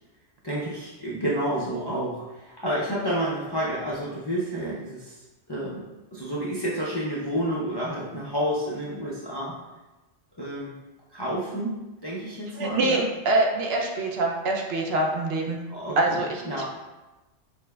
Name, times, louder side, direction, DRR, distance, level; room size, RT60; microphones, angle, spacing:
voice 1, 0.4-5.8 6.1-9.5 10.4-10.7 11.1-13.1 15.7-16.6, right 1 dB, 35° left, -7 dB, 0.4 m, -30 dB
voice 2, 12.6-15.6 16.0-16.6, right 2 dB, 70° right, 1 dB, 0.8 m, -25 dB
6.2 x 2.1 x 2.2 m, 1.1 s
omnidirectional pair, 1.2 m